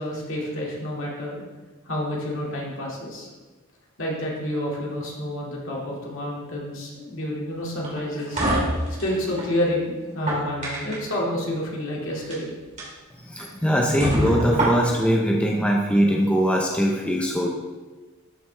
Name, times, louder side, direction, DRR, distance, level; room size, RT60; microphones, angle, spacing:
voice 1, 0.0-1.4 1.9-3.3 4.0-8.6 9.0-12.5, left 1 dB, 65° left, -3 dB, 2.2 m, -29 dB
sound 1, 7.8-9.5 10.1-11.1 12.1-12.4 12.8-12.9 13.4-13.5 14.0-15.1, right 1 dB, 35° right, 2.6 m, -26 dB
voice 2, 13.2-17.5, equal, 5° left, -1 dB, 0.6 m, -21 dB
12.5 x 5.1 x 3.3 m, 1.2 s
head